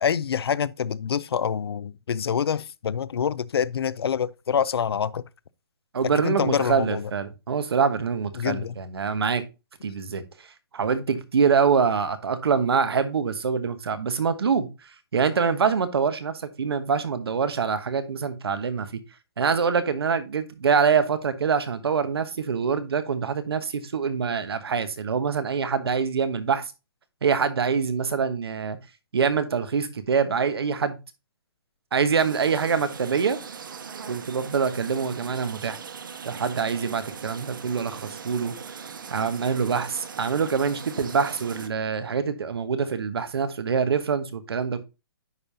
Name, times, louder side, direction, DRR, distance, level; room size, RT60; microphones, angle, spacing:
voice 1, 0.0-5.2 6.1-7.1 8.4-8.7, left 7 dB, 80° left, 0.5 m, -26 dB
voice 2, 5.9-9.4 9.8-10.2 10.7-14.7 15.1-18.9 19.4-26.6 27.2-28.8 29.1-31.0 31.9-33.4 34.1-35.8 36.2-38.8 39.1-44.8, right 6 dB, 75° right, 1.2 m, -25 dB
sound 1, 32.2-41.7, right 6 dB, 55° right, 0.8 m, -40 dB
9.7 x 5.2 x 2.7 m
hypercardioid pair, 180°, 13 cm